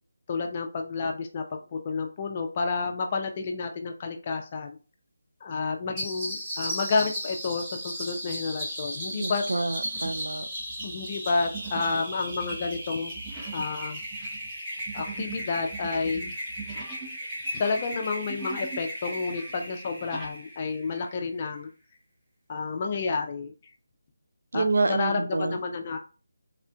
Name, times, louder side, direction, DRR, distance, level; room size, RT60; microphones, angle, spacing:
voice 1, 0.3-4.8 5.4-9.4 10.8-13.1 13.5-14.0 14.9-16.4 17.6-21.7 22.5-23.5 24.5-26.0, left 4 dB, 30° left, 4 dB, 0.4 m, -30 dB
sound 1, 6.0-21.2, equal, 20° right, 1.1 m, -36 dB
sound 2, 8.1-8.5 9.0-9.2 9.8-10.3 10.6-17.2 17.4-18.9 19.2-20.4, right 5 dB, 5° right, 0.7 m, -43 dB
voice 2, 9.2-10.5 24.5-25.6, right 3 dB, 70° right, 11 dB, 0.3 m, -27 dB
3.5 x 2.4 x 2.2 m, 0.35 s
figure-of-eight pair, 160°, 0 cm